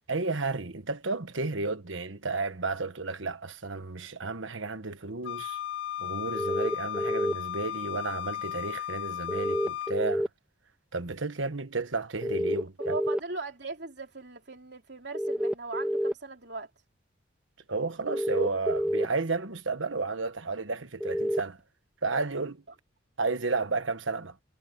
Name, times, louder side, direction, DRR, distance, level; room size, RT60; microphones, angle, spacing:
voice 1, 0.1-5.6 6.0-10.3 10.9-12.9 17.7-21.6 22.0-22.6 23.2-24.4, right 3 dB, 80° right, 1.4 m, -32 dB
Wind instrument woodwind instrument, 5.2-10.0, left 12 dB, 85° left, 1.8 m, -35 dB
sound 1, 6.3-7.3 9.3-10.3 12.2-13.2 15.1-16.1 18.1-19.1 21.0-21.4, equal, 5° right, 1.5 m, -28 dB
voice 2, 12.8-16.7, right 3 dB, 60° right, 3.5 m, -39 dB
head